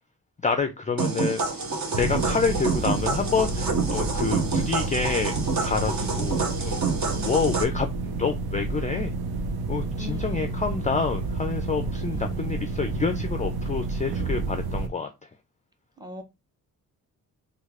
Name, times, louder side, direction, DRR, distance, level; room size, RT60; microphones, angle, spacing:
voice 1, 0.4-1.4 1.9-5.4 5.6-6.8 7.2-9.1 9.7-15.1, left 5 dB, 20° left, 0.3 m, -28 dB
sound 1, 1.0-7.6, right 4 dB, 50° right, 0.8 m, -28 dB
sound 2, 1.9-14.9, right 3 dB, 85° right, 0.6 m, -30 dB
voice 2, 6.0-6.3 7.1-7.4 9.9-10.6 12.1-12.4 16.0-16.2, left 1 dB, 10° right, 0.7 m, -40 dB
3.1 x 2.4 x 3.5 m
cardioid pair, 90°, 36 cm